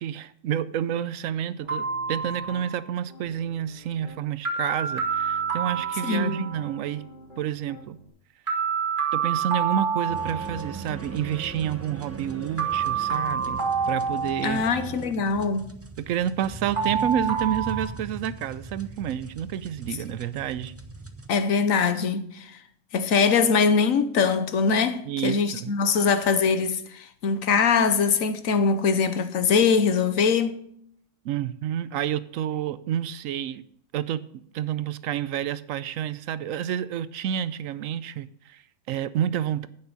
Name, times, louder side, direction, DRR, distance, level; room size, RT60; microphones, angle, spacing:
voice 1, 0.0-7.0 7.4-8.0 9.1-14.7 16.0-20.7 25.1-25.7 31.2-33.6 33.9-39.7, right 10 dB, 85° right, 1.0 m, -29 dB
Piano, 1.6-2.7 3.1-4.2 4.9-8.1, left 1 dB, 35° left, 3.9 m, -48 dB
sound 1, 1.7-2.8 4.5-6.8 8.5-10.8 12.6-14.9 16.8-17.8, right 6 dB, 40° right, 2.0 m, -28 dB
voice 2, 6.0-6.5 14.4-15.7 21.3-22.6 22.9-30.5, left 5 dB, 90° left, 1.3 m, -22 dB
sound 2, 10.1-21.3, right 3 dB, 15° right, 0.6 m, -40 dB
10.5 x 8.9 x 4.0 m
omnidirectional pair, 1.4 m